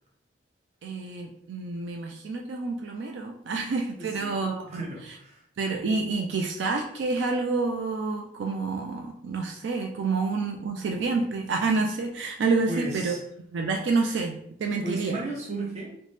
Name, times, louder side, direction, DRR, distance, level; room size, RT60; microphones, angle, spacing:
voice 1, 0.8-4.8 5.6-13.2 13.5-15.2, right 3 dB, 75° right, 2 dB, 0.4 m, -28 dB
voice 2, 4.0-5.4 12.7-13.2 14.8-16.0, right 2 dB, 35° right, -2 dB, 0.8 m, -35 dB
4.0 x 2.1 x 3.2 m, 0.71 s
head